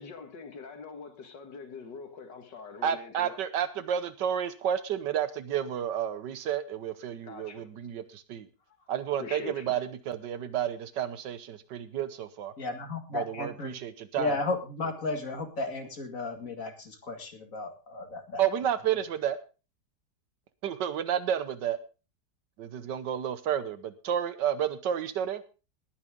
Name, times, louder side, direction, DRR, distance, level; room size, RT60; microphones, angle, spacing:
voice 1, 0.0-3.4 7.2-7.7 9.2-9.8, left 5 dB, 85° left, 2.5 m, -43 dB
voice 2, 2.8-8.5 8.9-12.5 13.1-14.4 18.4-19.4 20.6-21.8 22.6-25.4, right 9 dB, 80° right, 1.5 m, -31 dB
voice 3, 12.6-13.7 14.2-18.4, left 3 dB, 50° left, 2.5 m, -34 dB
19.5 x 9.7 x 3.7 m
omnidirectional pair, 1.8 m